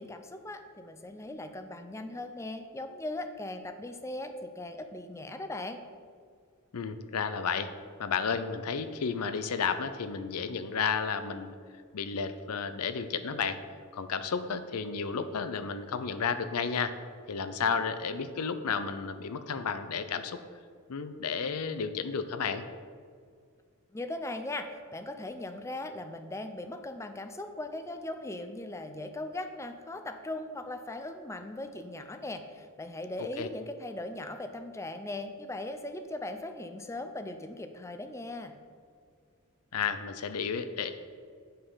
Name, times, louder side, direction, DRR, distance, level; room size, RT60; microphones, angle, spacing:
voice 1, 0.0-5.8 23.9-38.5, left 2 dB, 15° left, 7 dB, 0.5 m, -39 dB
voice 2, 6.7-7.7 8.0-11.5 11.9-13.6 13.9-17.0 17.3-20.4 20.9-22.6 33.2-33.5 39.7-40.9, left 6 dB, 85° left, 10 dB, 0.6 m, -32 dB
8.6 x 5.5 x 5.5 m, 2.1 s
head